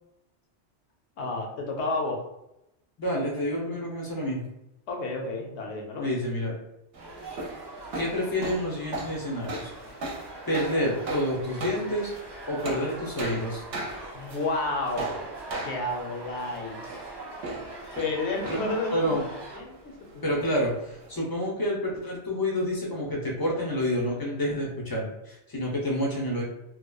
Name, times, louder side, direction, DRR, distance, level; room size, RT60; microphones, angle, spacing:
voice 1, 1.2-2.2 4.9-6.1 14.1-15.0 15.6-16.8 17.9-19.2 19.5-20.3, left 2 dB, 80° left, 1 dB, 0.9 m, -31 dB
voice 2, 3.0-4.4 6.0-6.5 7.9-9.7 10.5-12.1 12.5-13.6 18.5-18.6 18.9-19.2 20.2-26.4, equal, 30° left, -3 dB, 0.4 m, -28 dB
sound 1, 6.9-21.2, right 2 dB, 65° right, 0.7 m, -38 dB
sound 2, 7.0-19.6, right 2 dB, 35° right, 0.4 m, -43 dB
2.9 x 2.1 x 2.2 m, 0.86 s
omnidirectional pair, 1.2 m